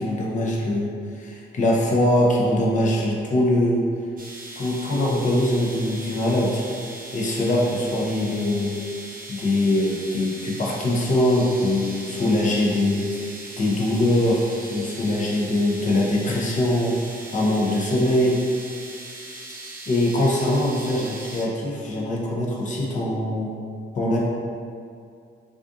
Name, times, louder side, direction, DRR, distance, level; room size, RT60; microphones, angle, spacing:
voice 1, 0.0-3.8 4.6-6.7 7.1-8.8 9.3-13.3 13.6-14.4 14.7-16.9 17.3-18.4 19.9-23.5 23.9-24.2, left 1 dB, 40° left, -3 dB, 0.6 m, -22 dB
sound 1, 4.2-21.4, right 2 dB, 45° right, 0.5 m, -39 dB
2.5 x 2.4 x 2.4 m, 2.3 s
cardioid pair, 90°, 20 cm